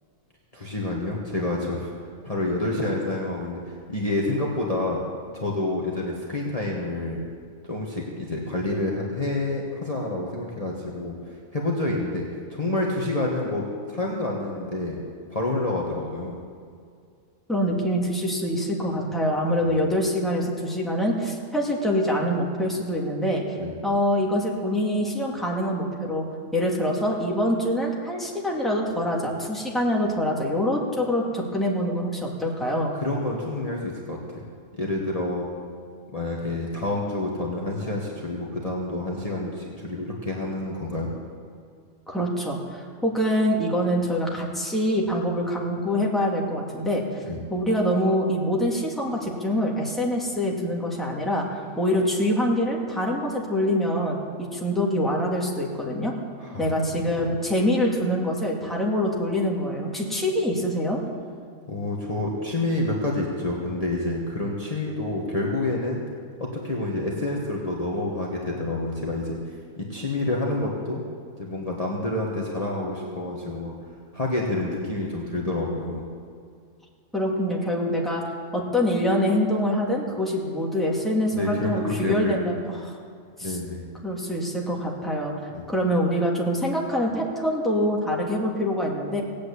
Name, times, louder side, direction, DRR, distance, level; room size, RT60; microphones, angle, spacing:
voice 1, 0.5-1.9 2.2-3.6 3.9-5.0 5.3-7.2 7.7-11.2 11.5-12.2 12.5-13.6 13.9-15.0 15.3-16.3 19.6-19.8 23.6-23.7 32.9-34.4 34.8-35.5 36.1-41.1 47.3-47.4 56.4-56.8 61.7-66.0 66.5-69.4 69.8-71.0 71.4-73.7 74.1-76.0 81.3-82.4 83.4-83.8 85.5-85.6, left 2 dB, 30° left, -3 dB, 1.6 m, -28 dB
voice 2, 17.5-23.4 23.8-26.3 26.5-32.9 42.1-47.0 47.5-54.2 54.5-56.2 56.6-61.0 77.1-78.2 78.5-83.0 83.4-83.6 84.0-85.3 85.7-89.2, equal, ahead, -3 dB, 2.1 m, -25 dB
17.5 x 8.6 x 8.4 m, 2.3 s
omnidirectional pair, 1.4 m